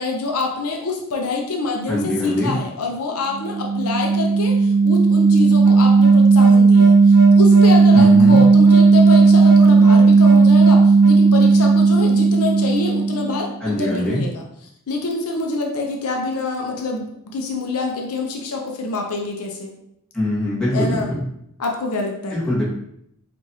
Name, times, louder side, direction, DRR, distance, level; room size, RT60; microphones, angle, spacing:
voice 1, 0.0-14.4 14.9-17.1 17.3-19.7 20.7-21.1 21.6-22.4, left 3 dB, 80° left, 1 dB, 0.6 m, -26 dB
voice 2, 1.9-2.5 7.9-8.4 13.6-14.2 20.1-21.2 22.3-22.6, left 1 dB, 5° left, -9 dB, 1.4 m, -22 dB
sound 1, 3.3-13.5, right 4 dB, 70° right, 0.6 m, -13 dB
4.6 x 2.6 x 2.7 m, 0.75 s
head